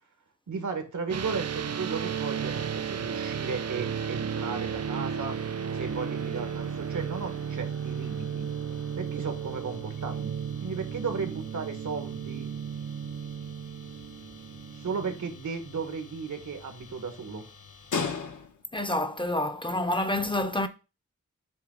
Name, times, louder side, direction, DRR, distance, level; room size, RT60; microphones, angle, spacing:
voice 1, 0.5-5.4 5.7-8.5 9.0-10.3 10.6-12.5 14.7-17.4, right 5 dB, 80° right, 1.4 m, -35 dB
sound 1, 1.1-15.3, right 7 dB, 60° right, 0.5 m, -34 dB
sound 2, 1.9-18.8, left 5 dB, 85° left, 1.2 m, -44 dB
voice 2, 18.7-20.7, left 1 dB, 15° left, 0.6 m, -28 dB
8.0 x 3.2 x 5.2 m
wide cardioid pair, 115°, 30 cm